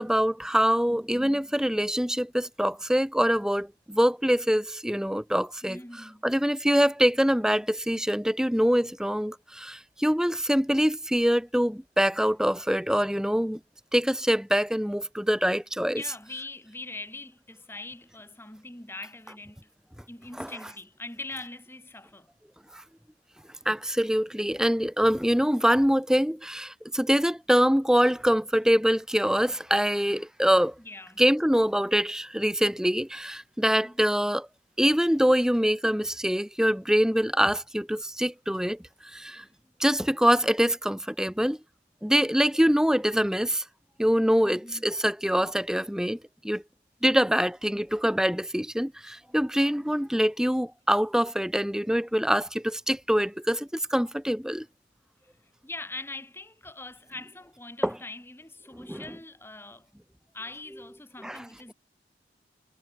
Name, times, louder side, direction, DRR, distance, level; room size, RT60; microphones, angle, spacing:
voice 1, 0.0-5.8 6.2-13.6 13.9-16.0 20.4-20.5 23.6-30.7 31.2-34.5 34.8-38.8 39.1-39.4 39.8-41.6 42.0-43.6 44.0-46.2 46.4-46.6 47.0-54.6 57.8-58.0 58.7-59.0 61.2-61.5, equal, 5° right, 1.1 m, -24 dB
voice 2, 5.6-6.3 15.9-19.7 20.1-22.3 30.8-31.2 33.6-34.0 39.3-39.6 44.4-45.0 55.6-59.9 60.3-61.7, left 2 dB, 15° left, 3.6 m, -42 dB
head